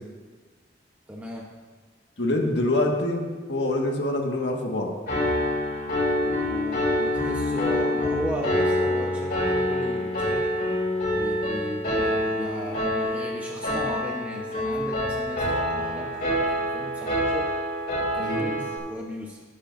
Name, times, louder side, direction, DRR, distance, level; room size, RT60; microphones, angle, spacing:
voice 1, 1.1-1.5 6.1-10.5 11.1-17.5 18.1-19.4, equal, 10° right, -2 dB, 0.9 m, -36 dB
voice 2, 2.2-3.2 3.5-4.9 18.2-18.4, left 1 dB, 75° left, 1 dB, 1.6 m, -25 dB
Piano, 5.1-18.8, left 1 dB, 55° left, 3.4 m, -26 dB
19.5 x 8.6 x 2.6 m, 1.4 s
head